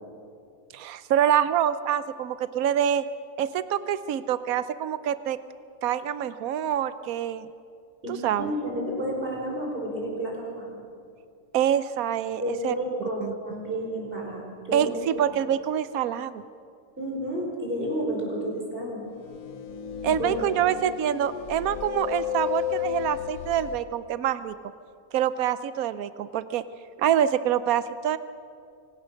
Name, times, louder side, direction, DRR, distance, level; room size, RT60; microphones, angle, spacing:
voice 1, 0.7-3.0 3.4-5.4 5.8-7.5 8.1-8.5 11.5-12.7 13.2-13.3 14.7-16.4 20.0-24.5 25.1-26.6 27.0-28.2, right 10 dB, 85° right, 14 dB, 1.1 m, -26 dB
voice 2, 8.0-10.8 12.4-14.9 15.2-15.3 17.0-19.0 20.0-20.5, equal, 40° right, -1 dB, 5.2 m, -31 dB
sound 1, 19.2-23.8, left 11 dB, 75° left, 1.3 m, -33 dB
25.0 x 18.0 x 6.3 m, 2.3 s
omnidirectional pair, 1.5 m